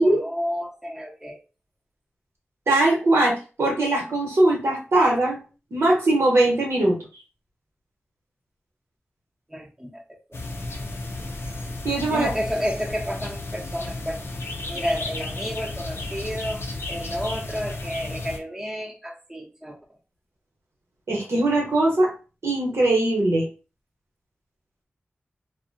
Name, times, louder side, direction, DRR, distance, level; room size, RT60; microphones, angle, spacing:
voice 1, 0.0-1.4 9.5-10.0 10.3-10.4 12.1-14.2 14.7-19.8, equal, 10° right, -2 dB, 0.7 m, -31 dB
voice 2, 2.7-5.4 5.7-7.0 11.8-12.3 21.1-22.1 22.4-23.4, right 2 dB, 80° right, -1 dB, 1.0 m, -20 dB
sound 1, 10.3-18.4, left 2 dB, 65° left, 0.5 m, -33 dB
2.5 x 2.1 x 2.5 m, 0.34 s
wide cardioid pair, 75°, 5 cm